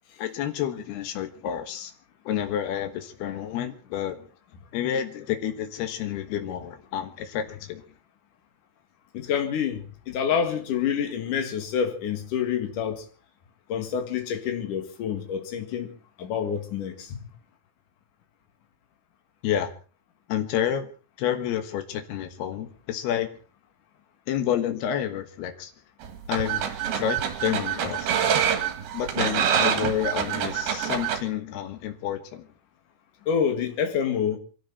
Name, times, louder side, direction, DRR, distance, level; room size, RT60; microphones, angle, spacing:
voice 1, 0.2-1.9 2.3-4.2 4.7-7.8 19.4-19.8 20.3-20.9 21.2-23.3 24.3-25.7 26.3-28.1 28.9-32.5, left 10 dB, 85° left, 3.5 m, -29 dB
voice 2, 9.1-13.1 13.7-17.2 33.3-34.4, left 7 dB, 60° left, 3.4 m, -27 dB
sound 1, 26.0-31.2, right 8 dB, 80° right, 3.9 m, -26 dB
27.0 x 13.0 x 4.2 m
omnidirectional pair, 4.4 m